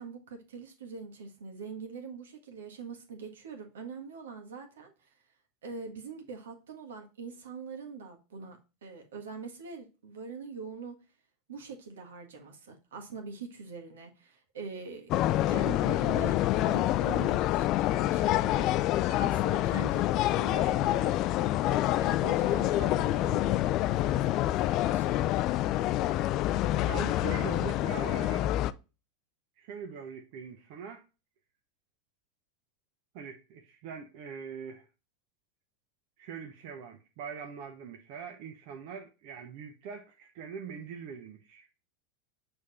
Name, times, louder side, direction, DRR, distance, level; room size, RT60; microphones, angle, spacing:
voice 1, 0.0-4.9 5.6-11.0 11.5-15.1 15.5-21.2 21.6-25.3, right 5 dB, 80° right, 1.6 m, -43 dB
sound 1, 15.1-28.7, left 14 dB, 50° left, 0.3 m, -27 dB
voice 2, 26.8-28.5 29.6-31.0 33.1-34.9 36.2-41.7, right 6 dB, 60° right, 0.8 m, -42 dB
6.5 x 3.5 x 4.1 m
hypercardioid pair, 100°, 0 cm